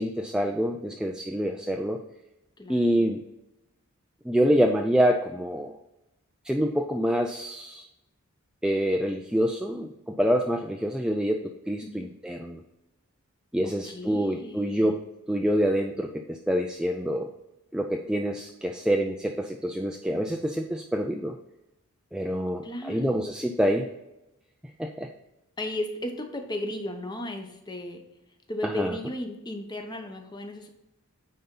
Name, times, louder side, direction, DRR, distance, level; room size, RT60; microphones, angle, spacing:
voice 1, 0.0-2.0 2.7-3.2 4.3-5.7 6.5-7.8 8.6-12.6 13.5-15.0 15.3-17.3 17.7-21.4 22.1-23.9 24.8-25.1 28.6-28.9, equal, 5° right, 3 dB, 0.3 m, -26 dB
voice 2, 2.6-3.1 11.8-12.1 13.6-14.9 22.6-23.2 25.6-28.0 28.5-30.7, left 1 dB, 20° left, 5 dB, 0.9 m, -35 dB
9.3 x 4.1 x 3.8 m, 0.92 s
head